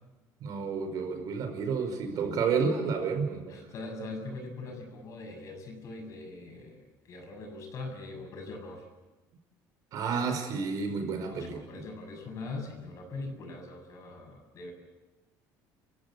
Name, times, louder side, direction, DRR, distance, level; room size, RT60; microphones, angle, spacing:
voice 1, 0.4-3.6 9.9-11.8, right 5 dB, 55° right, 5 dB, 5.4 m, -31 dB
voice 2, 3.5-8.9 11.3-14.7, left 3 dB, 45° left, 4 dB, 7.1 m, -42 dB
28.0 x 16.0 x 8.6 m, 1.1 s
cardioid pair, 145°, 8 cm